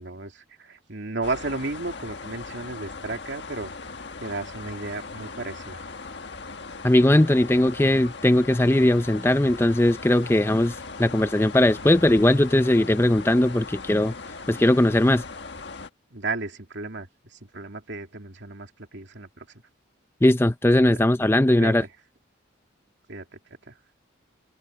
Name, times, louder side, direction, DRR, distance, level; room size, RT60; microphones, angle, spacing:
voice 1, 0.0-3.7 4.2-5.9 16.1-19.5 20.9-21.0 21.6-21.9 23.1-23.3 23.7-23.8, right 3 dB, 65° right, 2.7 m, -34 dB
sound 1, 1.2-15.9, left 4 dB, 60° left, 1.6 m, -39 dB
voice 2, 6.8-14.1 14.5-15.2 20.2-21.8, left 1 dB, 10° left, 0.5 m, -19 dB
open air
head